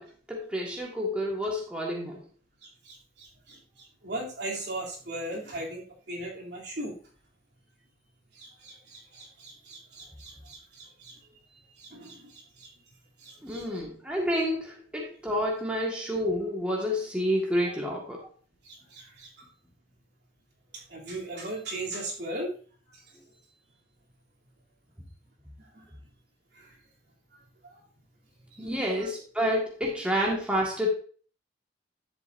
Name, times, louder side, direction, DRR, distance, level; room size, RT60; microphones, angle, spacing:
voice 1, 0.0-2.2 13.4-18.3 28.6-30.9, equal, 5° right, -2 dB, 1.7 m, -29 dB
voice 2, 2.8-3.6 4.0-5.8 6.1-6.9 8.3-11.1 11.8-12.7 13.2-13.6 17.6-17.7 18.6-19.3 20.9-22.5 25.6-25.8 26.6-26.7 28.5-28.9, right 1 dB, 65° right, -3 dB, 3.2 m, -38 dB
11.0 x 7.6 x 2.7 m, 0.42 s
head